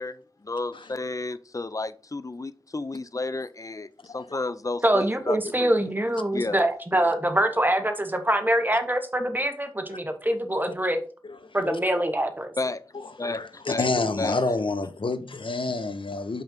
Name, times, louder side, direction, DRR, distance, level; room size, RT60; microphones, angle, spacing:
voice 1, 0.0-5.7 6.3-6.6 12.6-12.9 13.2-13.9 14.2-14.3, left 3 dB, 35° left, 0.5 m, -32 dB
voice 2, 4.8-11.0 11.5-12.5, right 1 dB, 20° right, 1.1 m, -24 dB
voice 3, 13.2-16.4, left 3 dB, 65° left, 0.8 m, -28 dB
5.5 x 5.2 x 3.7 m
wide cardioid pair, 50°, 10 cm